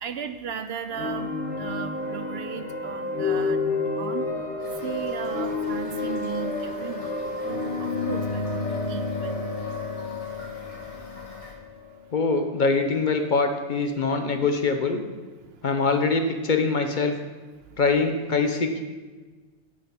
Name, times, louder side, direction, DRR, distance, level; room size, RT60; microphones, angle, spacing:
voice 1, 0.0-3.6 4.0-4.3 4.8-7.1 7.5-9.4, right 8 dB, 65° right, 9 dB, 0.7 m, -36 dB
sound 1, 0.9-12.6, left 3 dB, 75° left, 1.5 m, -30 dB
Toilet flush / Fill (with liquid), 4.6-11.5, left 2 dB, 30° left, 1.6 m, -46 dB
voice 2, 12.1-15.0 15.6-17.2 17.8-18.8, left 4 dB, 50° left, 6 dB, 0.7 m, -23 dB
9.6 x 8.6 x 3.5 m, 1.3 s
omnidirectional pair, 1.2 m